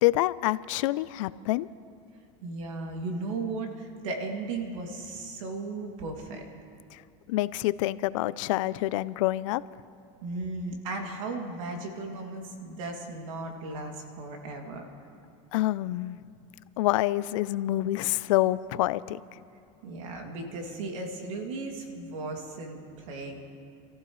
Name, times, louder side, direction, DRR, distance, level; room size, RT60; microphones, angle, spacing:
voice 1, 0.0-1.7 6.9-7.0 7.3-9.6 15.5-16.2 16.8-19.2, left 16 dB, 85° left, 18 dB, 0.4 m, -27 dB
voice 2, 2.4-6.5 10.2-14.9 19.8-23.4, right 3 dB, 90° right, 2 dB, 2.4 m, -36 dB
27.0 x 14.5 x 3.1 m, 2.5 s
supercardioid pair, 140°, 16 cm